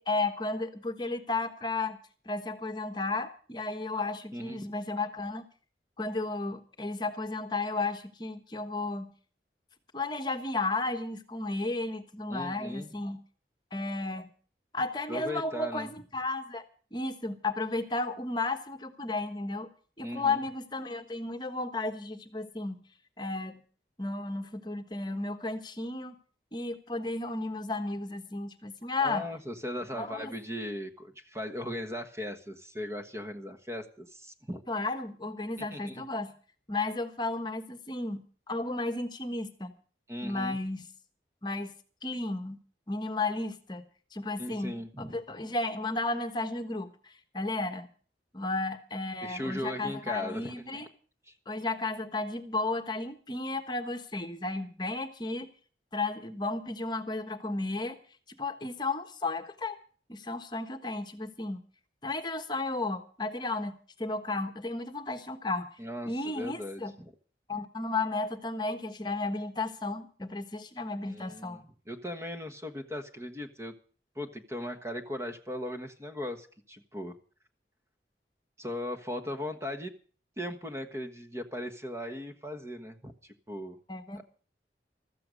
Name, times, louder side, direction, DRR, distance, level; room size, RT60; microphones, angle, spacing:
voice 1, 0.0-2.0 2.2-5.4 6.0-9.1 9.9-13.2 13.7-14.3 14.7-16.6 16.9-19.7 20.0-22.8 23.2-23.6 24.0-26.2 26.5-29.3 29.9-30.3 34.7-36.3 36.7-39.7 40.2-40.9 41.4-41.7 42.0-42.6 42.9-43.8 44.1-47.9 48.3-50.9 51.5-55.5 55.9-58.0 58.4-59.8 60.1-61.6 62.0-65.7 66.1-66.9 67.5-71.6 83.9-84.2, left 2 dB, 25° left, 7 dB, 1.3 m, -33 dB
voice 2, 12.3-12.9 15.1-15.9 20.0-20.4 29.0-34.6 35.6-36.0 40.1-40.6 44.4-45.2 49.2-50.8 51.3-51.4 65.8-67.1 71.0-71.6 71.9-73.7 74.1-77.2 78.6-79.9 80.4-83.8, left 1 dB, 15° right, 6 dB, 1.3 m, -38 dB
14.5 x 14.0 x 5.2 m, 0.41 s
head